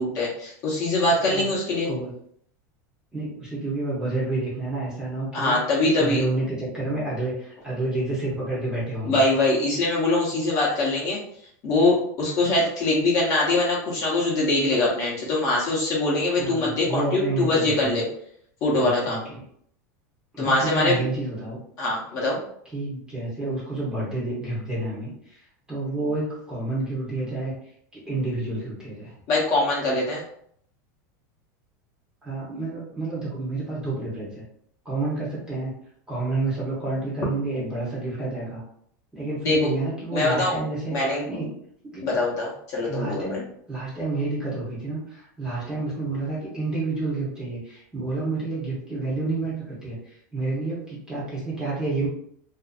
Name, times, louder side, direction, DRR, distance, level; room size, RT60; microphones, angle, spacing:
voice 1, 0.0-1.9 5.3-6.2 9.1-11.2 11.6-18.1 18.6-19.2 20.4-21.0 21.8-22.4 29.3-30.2 39.4-39.7 40.1-40.6 40.9-41.2 42.0-43.2, left 2 dB, 35° left, -5 dB, 0.8 m, -23 dB
voice 2, 3.1-5.6 6.0-9.2 16.4-18.0 18.8-19.4 20.3-21.6 22.7-27.5 27.9-29.1 32.2-34.3 34.8-35.8 36.1-38.6 39.1-41.5 41.9-42.1 42.8-49.6 49.8-52.1, right 2 dB, 10° right, -7 dB, 0.8 m, -29 dB
2.5 x 2.4 x 2.4 m, 0.67 s
supercardioid pair, 165°, 9 cm